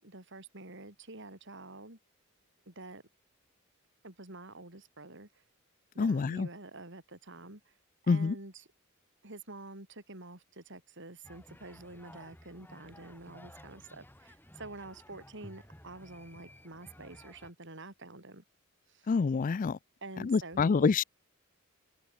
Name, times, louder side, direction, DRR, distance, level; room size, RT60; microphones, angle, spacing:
voice 1, 0.0-2.0 2.7-3.0 4.0-5.3 5.9-7.6 8.0-8.6 9.2-18.4 18.9-19.1 20.0-21.0, right 2 dB, 60° right, 5.3 m, -48 dB
voice 2, 6.0-6.5 8.1-8.4 19.1-19.8 20.2-21.0, left 5 dB, 40° left, 0.4 m, -27 dB
sound 1, 11.2-17.5, left 1 dB, 10° left, 4.8 m, -54 dB
head